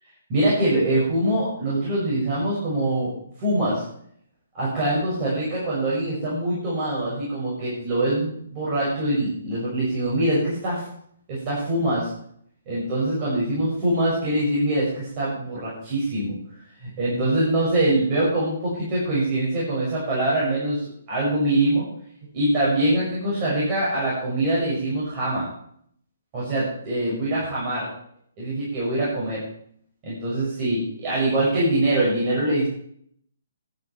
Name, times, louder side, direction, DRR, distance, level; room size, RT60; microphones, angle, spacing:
voice 1, 0.3-3.1 3.4-3.8 4.5-10.8 11.3-12.1 12.7-16.4 16.8-21.9 22.3-25.5 26.3-27.9 28.4-29.4 30.0-32.7, right 1 dB, 25° right, -7 dB, 5.9 m, -23 dB
17.0 x 10.0 x 4.4 m, 0.64 s
hypercardioid pair, 165°, 0 cm